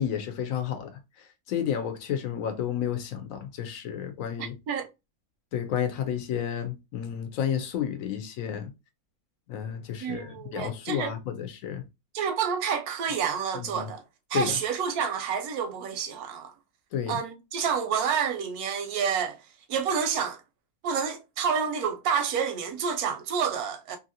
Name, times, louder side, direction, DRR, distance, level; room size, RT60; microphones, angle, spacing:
voice 1, 0.0-4.6 5.5-8.7 9.5-11.8 13.5-13.9 14.3-14.6 16.9-17.2, left 9 dB, 70° left, 0.9 m, -31 dB
voice 2, 4.4-4.9 10.0-11.1 12.1-14.0 14.3-16.5 17.1-19.4 19.7-20.4 20.8-24.0, right 7 dB, 85° right, 1.1 m, -29 dB
2.8 x 2.6 x 2.7 m
omnidirectional pair, 1.5 m